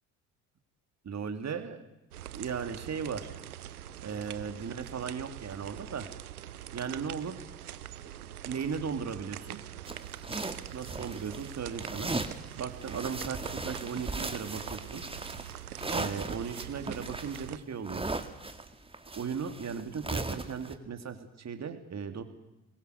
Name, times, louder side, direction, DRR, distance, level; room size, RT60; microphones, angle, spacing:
voice 1, 1.0-1.8 2.3-3.3 4.0-6.1 6.7-7.4 8.4-9.6 10.7-12.1 12.6-15.0 15.9-18.0 19.1-22.2, right 6 dB, 40° right, 7 dB, 3.0 m, -37 dB
sound 1, 2.1-17.6, right 11 dB, 85° right, 0.8 m, -44 dB
sound 2, 9.9-11.5 11.8-12.4 12.8-20.7, right 2 dB, 10° right, 2.1 m, -37 dB
23.5 x 21.5 x 6.7 m, 0.97 s
hypercardioid pair, 55°, 43 cm